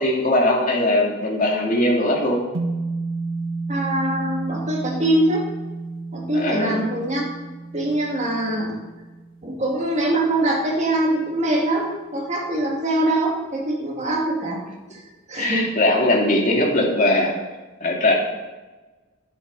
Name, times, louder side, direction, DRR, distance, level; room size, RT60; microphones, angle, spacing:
voice 1, 0.0-2.4 6.3-6.8 15.4-17.3 17.8-18.1, left 1 dB, 40° left, -1 dB, 2.3 m, -20 dB
sound 1, 2.5-11.0, right 3 dB, 85° right, 1.4 m, -32 dB
voice 2, 3.7-5.5 6.1-7.2 7.7-8.8 9.4-14.6 14.9-15.0 15.3-15.7, right 1 dB, 35° right, -1 dB, 2.1 m, -23 dB
12.0 x 10.0 x 5.4 m, 1.2 s
head